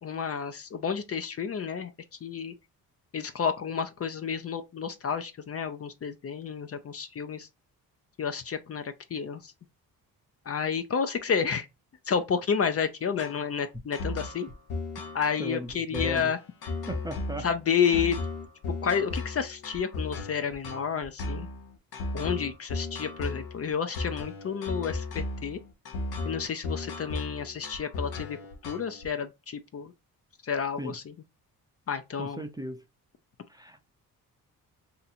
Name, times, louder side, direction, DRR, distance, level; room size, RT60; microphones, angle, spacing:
voice 1, 0.0-1.9 2.2-2.5 3.1-7.5 8.2-9.5 10.5-11.7 12.1-14.5 15.1-16.4 17.4-18.2 18.8-21.5 22.1-25.6 26.3-28.4 28.7-29.9 30.4-31.1 31.9-32.4, left 6 dB, 40° left, 0.6 m, -30 dB
sound 1, 13.2-29.1, left 3 dB, 75° left, 1.0 m, -35 dB
voice 2, 15.4-16.3 16.9-17.5 17.9-18.0 30.8-30.9 32.2-32.8 33.5-33.8, equal, 10° right, 0.5 m, -37 dB
2.8 x 2.6 x 4.1 m
cardioid pair, 70°, 37 cm